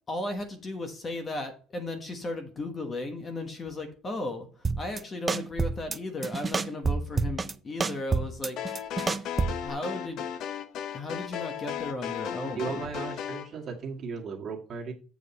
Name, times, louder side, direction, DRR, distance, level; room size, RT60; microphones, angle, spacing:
voice 1, 0.1-4.5 4.8-8.6 9.6-10.3 10.9-12.8, left 2 dB, 20° left, 6 dB, 1.2 m, -35 dB
sound 1, 4.6-5.0 5.3-6.0 6.2-7.5 7.8-9.7, right 4 dB, 15° right, 0.4 m, -28 dB
sound 2, 8.6-13.5, left 9 dB, 50° left, 0.8 m, -35 dB
voice 2, 12.5-14.9, right 5 dB, 35° right, 1 dB, 1.8 m, -36 dB
7.5 x 7.5 x 4.2 m, 0.37 s
cardioid pair, 165°, 0 cm